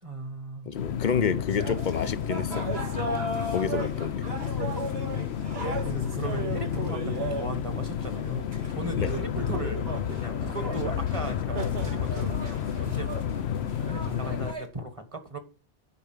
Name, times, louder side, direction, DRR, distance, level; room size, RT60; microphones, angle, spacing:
voice 1, 0.0-0.7 5.8-9.8 10.1-13.3 13.7-15.4, right 2 dB, 30° right, 1.6 m, -38 dB
sound 1, 0.7-14.5, left 9 dB, 85° left, 0.9 m, -31 dB
voice 2, 0.7-2.7 3.5-4.2 9.0-9.1, left 6 dB, 50° left, 0.8 m, -29 dB
sound 2, 1.5-14.6, right 2 dB, 70° right, 2.2 m, -36 dB
9.8 x 5.2 x 6.6 m
omnidirectional pair, 1.1 m